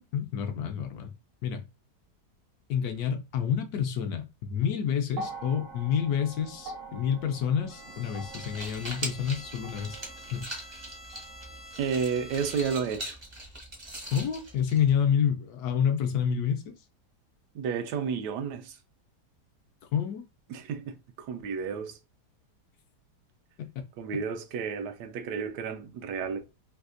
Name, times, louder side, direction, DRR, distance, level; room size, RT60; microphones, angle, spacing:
voice 1, 0.1-1.1 1.4-1.6 2.7-10.0 10.3-10.5 14.1-16.7 19.9-20.2, left 8 dB, 70° left, 1.0 m, -28 dB
sound 1, 5.1-13.4 14.5-14.6, right 3 dB, 60° right, 1.0 m, -46 dB
Bowed string instrument, 7.7-13.1, equal, 55° left, 0.8 m, -48 dB
sound 2, 8.1-15.2, right 1 dB, 35° right, 0.4 m, -42 dB
voice 2, 11.8-13.2 17.5-18.8 20.5-22.0 24.0-26.4, right 6 dB, 80° right, 1.2 m, -32 dB
3.3 x 2.7 x 2.5 m
omnidirectional pair, 1.8 m